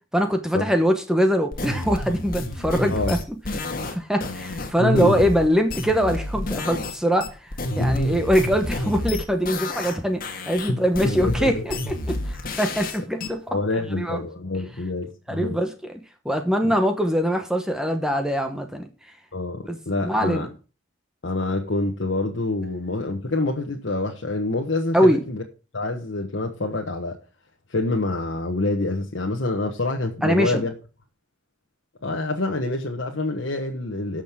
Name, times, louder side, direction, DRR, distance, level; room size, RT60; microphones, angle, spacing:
voice 1, 0.1-3.2 3.7-7.3 7.8-13.4 13.9-14.2 15.3-16.0 16.2-18.9 19.7-20.5 24.9-25.2 30.2-30.6, equal, 5° right, 1.0 m, -23 dB
sound 1, 1.5-7.0 7.2-10.0 10.2-13.3, left 2 dB, 45° left, 1.7 m, -30 dB
voice 2, 4.8-5.1 7.8-8.2 10.7-11.7 13.5-15.6 16.6-16.7 19.3-20.5 21.2-25.4 25.7-27.2 27.7-30.7 32.0-34.2, left 2 dB, 65° left, 1.2 m, -26 dB
18.0 x 6.4 x 3.6 m
head